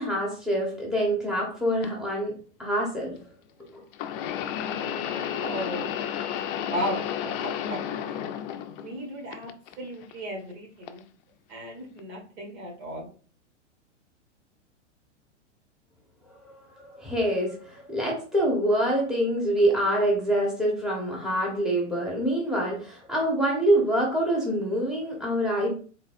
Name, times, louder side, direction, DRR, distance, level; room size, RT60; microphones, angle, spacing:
voice 1, 0.0-2.3 2.6-3.1 3.7-3.8 16.4-25.7, right 1 dB, ahead, -3 dB, 1.4 m, -26 dB
sound 1, 1.8-1.9 3.9-9.0 9.3-10.1 10.9-11.0 12.0-12.1, left 9 dB, 45° left, 0.5 m, -32 dB
voice 2, 5.3-5.9 6.7-8.2 8.8-9.5 9.8-11.0 11.5-13.1, equal, 60° right, 1 dB, 2.0 m, -35 dB
4.1 x 3.9 x 2.6 m, 0.39 s
hypercardioid pair, 105°, 36 cm